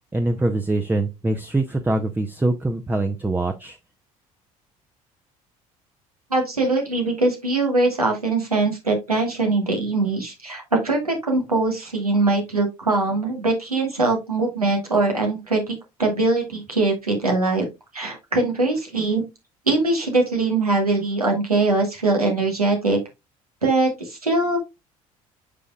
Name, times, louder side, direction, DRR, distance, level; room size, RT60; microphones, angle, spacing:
voice 1, 0.1-3.8, right 2 dB, 10° right, 6 dB, 0.7 m, -23 dB
voice 2, 6.3-17.7 17.9-19.2 19.7-23.0 23.6-24.6, right 3 dB, 90° right, 2 dB, 1.4 m, -22 dB
8.3 x 5.3 x 2.3 m, 0.23 s
figure-of-eight pair, 55°, 19 cm